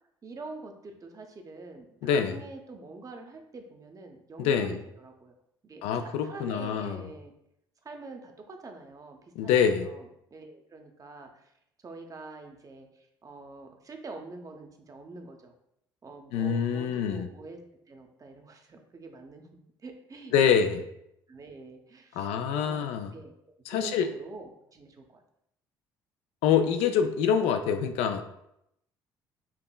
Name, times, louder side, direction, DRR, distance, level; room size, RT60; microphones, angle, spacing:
voice 1, 0.2-5.3 5.6-7.3 7.8-11.5 11.8-15.5 16.0-17.6 17.9-20.6 21.3-23.4 23.7-25.2, right 3 dB, 30° right, 4 dB, 0.7 m, -45 dB
voice 2, 2.0-2.4 4.4-4.8 5.8-7.1 9.4-9.9 16.3-17.3 20.3-20.8 22.1-23.1 23.7-24.1 26.4-28.2, left 7 dB, 60° left, 7 dB, 0.4 m, -25 dB
5.7 x 2.8 x 2.3 m, 0.79 s
figure-of-eight pair, 55°, 12 cm